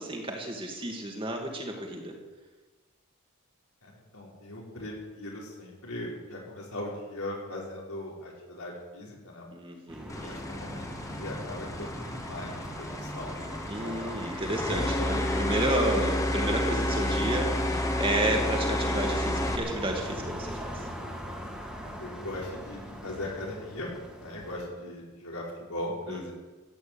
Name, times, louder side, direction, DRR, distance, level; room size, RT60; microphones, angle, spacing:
voice 1, 0.0-2.2 9.5-10.4 13.7-20.5 26.1-26.3, right 1 dB, 25° right, 2 dB, 2.3 m, -31 dB
voice 2, 3.8-9.5 10.2-13.3 13.8-14.1 14.4-15.1 22.0-23.9 24.2-26.3, left 1 dB, 80° left, -3 dB, 5.3 m, -39 dB
sound 1, 9.9-24.6, equal, 5° right, 2.4 m, -41 dB
sound 2, 10.1-19.6, left 1 dB, 15° left, 1.3 m, -30 dB
15.0 x 9.7 x 8.8 m, 1.3 s
head